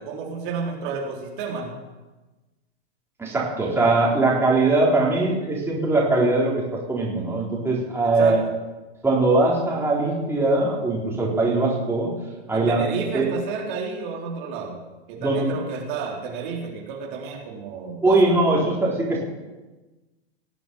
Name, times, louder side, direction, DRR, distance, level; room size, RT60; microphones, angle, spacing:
voice 1, 0.0-1.8 8.2-8.4 12.5-14.8 15.1-18.2, right 5 dB, 50° right, -1 dB, 3.5 m, -31 dB
voice 2, 3.2-8.4 9.0-12.1 12.5-12.8 13.1-13.3 15.2-15.5 18.0-19.2, right 2 dB, 5° right, -4 dB, 3.8 m, -21 dB
19.0 x 7.7 x 6.9 m, 1.2 s
hypercardioid pair, 130°, 33 cm